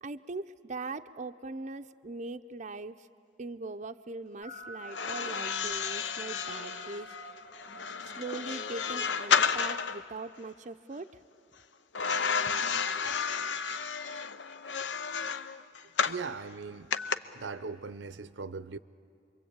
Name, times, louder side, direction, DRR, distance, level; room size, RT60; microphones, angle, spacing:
voice 1, 0.0-3.1 3.4-7.1 8.0-11.2 12.5-12.6, right 3 dB, 40° right, 0.6 m, -41 dB
sound 1, 4.4-9.8, right 2 dB, 45° left, 1.4 m, -50 dB
sound 2, 4.9-10.0 11.9-16.2 16.9-17.1, left 6 dB, 75° left, 0.8 m, -31 dB
voice 2, 16.0-16.9 17.3-18.8, right 4 dB, 80° right, 0.7 m, -39 dB
27.5 x 23.0 x 8.8 m
head